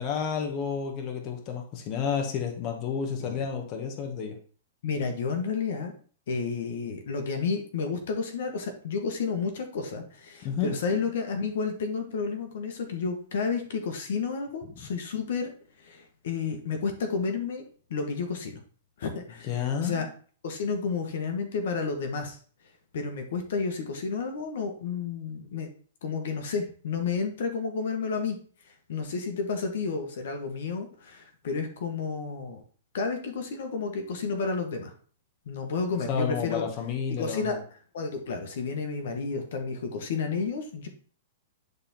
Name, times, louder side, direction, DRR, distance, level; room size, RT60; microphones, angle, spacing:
voice 1, 0.0-4.4 10.4-10.7 19.4-20.1 36.1-37.6, left 7 dB, 40° left, 3 dB, 1.7 m, -30 dB
voice 2, 4.8-5.9 6.3-15.5 15.8-17.6 17.9-18.5 19.0-20.1 20.4-22.4 22.9-25.7 26.0-28.4 28.6-32.6 32.9-34.9 35.4-36.6 37.2-37.6 37.9-40.9, left 5 dB, 70° left, 5 dB, 1.7 m, -31 dB
10.5 x 3.8 x 4.5 m, 0.43 s
hypercardioid pair, 135°, 0 cm